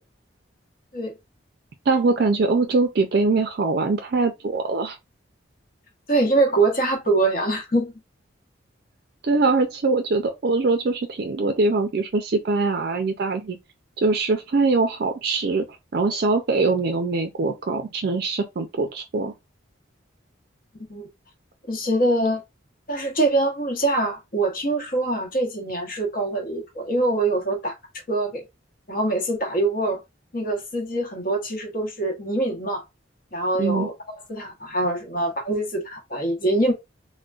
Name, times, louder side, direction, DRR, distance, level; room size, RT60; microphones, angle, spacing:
voice 1, 1.9-5.0 9.2-13.6 14.0-15.7 15.9-19.3 33.6-33.9, right 3 dB, 55° right, 0.4 m, -22 dB
voice 2, 6.1-7.9 20.9-21.1 21.7-22.4 22.9-27.7 28.1-28.4 28.9-30.0 30.3-32.8 33.3-33.9 34.3-36.7, right 2 dB, 45° left, 1.0 m, -24 dB
3.8 x 2.1 x 2.3 m
head